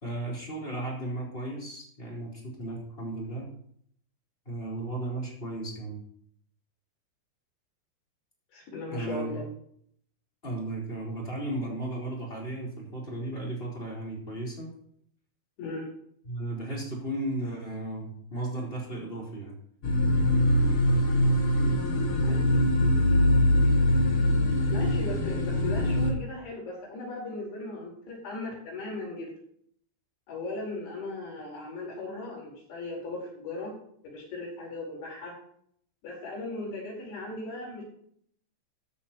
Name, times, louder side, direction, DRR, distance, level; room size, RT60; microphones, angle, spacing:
voice 1, 0.0-3.5 4.4-6.0 8.9-9.3 10.4-14.7 16.2-19.6, right 1 dB, 15° left, -3 dB, 4.3 m, -35 dB
voice 2, 8.5-9.4 15.6-15.9 22.3-22.5 24.7-29.3 30.3-33.7 34.0-35.4 36.0-37.8, left 2 dB, 80° left, -2 dB, 6.7 m, -37 dB
sound 1, 19.8-26.1, left 1 dB, 55° left, 1.6 m, -23 dB
13.5 x 13.0 x 3.2 m, 0.65 s
omnidirectional pair, 4.7 m